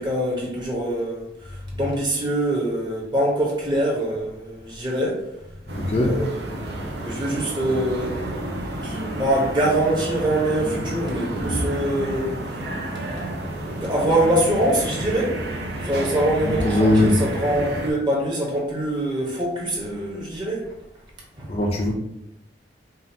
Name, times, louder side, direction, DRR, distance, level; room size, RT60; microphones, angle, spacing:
voice 1, 0.0-5.2 6.0-6.4 6.8-8.1 8.8-12.4 13.6-15.4 15.8-20.6 21.4-21.5, right 1 dB, 25° right, -3 dB, 1.1 m, -24 dB
voice 2, 5.7-6.2 16.4-17.3 21.5-21.9, left 1 dB, 35° left, 0 dB, 0.4 m, -20 dB
sound 1, 5.7-17.9, right 1 dB, 65° right, 0.7 m, -30 dB
5.1 x 2.4 x 2.8 m, 0.85 s
head